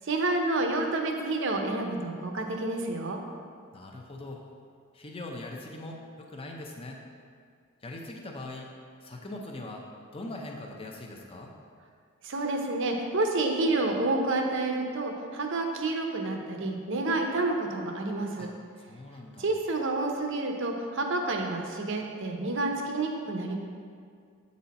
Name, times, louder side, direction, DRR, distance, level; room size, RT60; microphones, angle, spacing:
voice 1, 0.0-3.2 12.2-18.5 19.4-23.6, right 2 dB, 55° right, 2 dB, 0.7 m, -29 dB
voice 2, 3.7-4.4 4.9-7.0 7.8-8.7 9.0-9.8 10.1-11.5 18.4-18.5 18.9-19.5, left 2 dB, 25° left, 1 dB, 0.6 m, -41 dB
7.8 x 4.2 x 4.2 m, 2.2 s
head